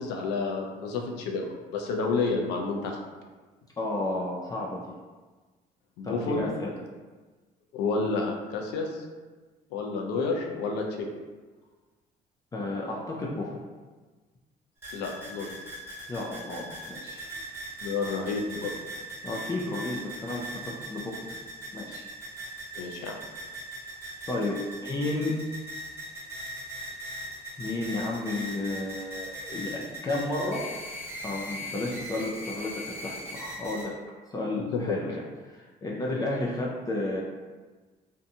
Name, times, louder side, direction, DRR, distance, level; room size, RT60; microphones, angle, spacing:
voice 1, 0.0-1.4 1.7-3.0 6.0-6.4 7.7-9.0 9.7-11.1 14.9-15.5 17.8-18.7 22.8-23.2 34.7-35.0, left 4 dB, 85° left, 2 dB, 0.5 m, -30 dB
voice 2, 3.8-4.9 6.0-6.7 12.5-13.6 16.1-17.3 19.2-21.4 21.7-22.1 24.3-25.4 27.6-30.6 31.2-32.7 33.0-33.9 34.3-37.2, left 2 dB, 20° left, -4 dB, 0.4 m, -32 dB
sound 1, 14.8-33.8, equal, 15° right, 1.2 m, -39 dB
2.7 x 2.2 x 2.7 m, 1.3 s
cardioid pair, 110°, 17 cm